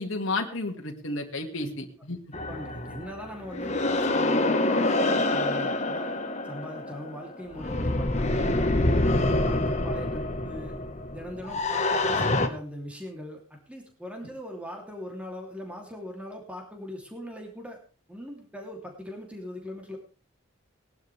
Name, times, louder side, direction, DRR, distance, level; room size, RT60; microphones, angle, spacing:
voice 1, 0.0-2.2 9.2-9.5, left 2 dB, 65° left, 2 dB, 2.1 m, -32 dB
sound 1, 2.3-12.5, left 2 dB, 35° left, 1.3 m, -26 dB
voice 2, 2.3-6.2 6.4-8.6 9.3-10.8 11.1-17.8 18.1-20.0, equal, 5° right, 1 dB, 3.0 m, -40 dB
19.5 x 11.5 x 3.4 m, 0.38 s
head